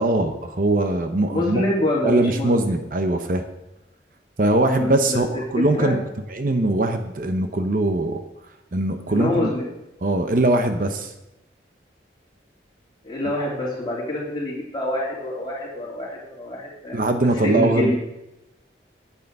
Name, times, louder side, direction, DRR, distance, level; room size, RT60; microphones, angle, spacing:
voice 1, 0.0-1.6 2.0-3.4 4.4-6.0 6.3-8.2 8.7-9.5 10.0-11.1 16.9-18.0, right 2 dB, 45° right, 7 dB, 0.7 m, -21 dB
voice 2, 1.3-2.8 4.7-5.2 5.8-6.0 9.1-9.6 13.0-17.0 17.4-18.0, left 1 dB, 25° left, -5 dB, 3.2 m, -26 dB
9.0 x 8.4 x 5.3 m, 0.92 s
head